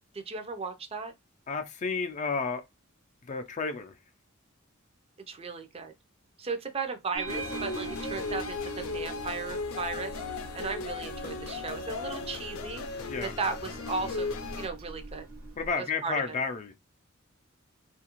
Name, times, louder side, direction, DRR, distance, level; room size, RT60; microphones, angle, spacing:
voice 1, 0.1-1.1 5.3-5.9 6.4-10.2 10.5-15.3 15.7-16.4, right 4 dB, 30° right, 0.5 m, -36 dB
voice 2, 1.5-2.6 3.3-3.9 13.1-13.3 15.6-16.7, left 4 dB, 35° left, 0.4 m, -31 dB
sound 1, 7.1-15.8, right 4 dB, 90° right, 0.9 m, -43 dB
sound 2, 7.3-14.7, left 4 dB, 90° left, 0.5 m, -36 dB
2.7 x 2.4 x 2.9 m
head